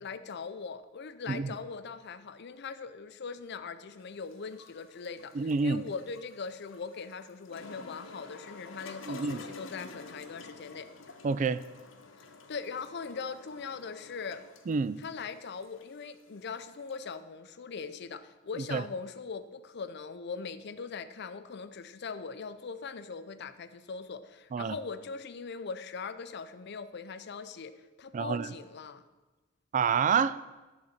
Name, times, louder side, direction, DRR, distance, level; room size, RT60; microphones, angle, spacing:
voice 1, 0.0-10.9 12.2-14.4 15.0-29.0, left 5 dB, 55° left, 0.5 m, -41 dB
sound 1, 4.0-17.1, left 3 dB, 80° left, 0.9 m, -50 dB
voice 2, 5.3-5.8 9.1-9.4 11.2-11.6 14.7-15.0 18.6-18.8 24.5-24.8 28.1-28.5 29.7-30.4, right 5 dB, 40° right, 0.3 m, -28 dB
11.5 x 4.0 x 7.3 m
head